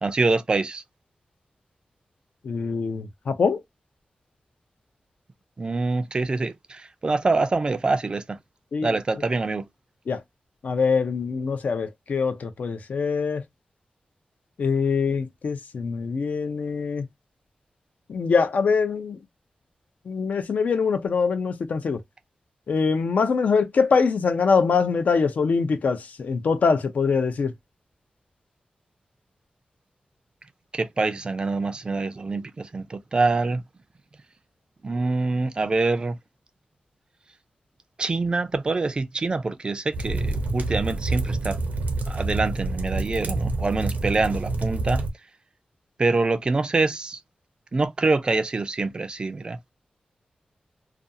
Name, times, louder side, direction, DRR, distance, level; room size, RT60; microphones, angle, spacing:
voice 1, 0.0-0.8 5.6-8.4 8.8-9.6 30.7-33.6 34.8-36.2 38.0-41.6 42.1-45.0 46.0-47.2 47.7-49.7, right 3 dB, 35° right, 0.3 m, -25 dB
voice 2, 2.4-3.6 8.7-8.9 10.1-10.2 10.6-13.4 14.6-17.1 18.1-19.2 20.1-22.0 22.7-27.5, left 5 dB, 70° left, 0.5 m, -23 dB
sound 1, 39.9-45.1, right 2 dB, 90° right, 0.6 m, -27 dB
2.5 x 2.3 x 2.6 m
wide cardioid pair, 115°, 3 cm